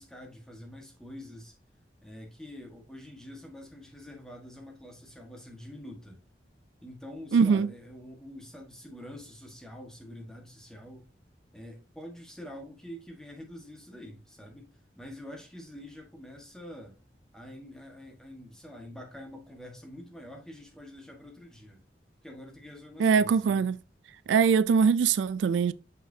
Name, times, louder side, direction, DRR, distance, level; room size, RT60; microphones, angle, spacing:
voice 1, 0.0-1.5 2.0-6.2 6.8-11.1 11.5-14.7 15.0-17.0 17.3-21.8 22.2-23.6, left 1 dB, 5° left, 1.3 m, -46 dB
voice 2, 7.3-7.7 23.0-23.8 24.3-25.7, right 6 dB, 90° right, 0.3 m, -22 dB
6.5 x 5.6 x 2.7 m
head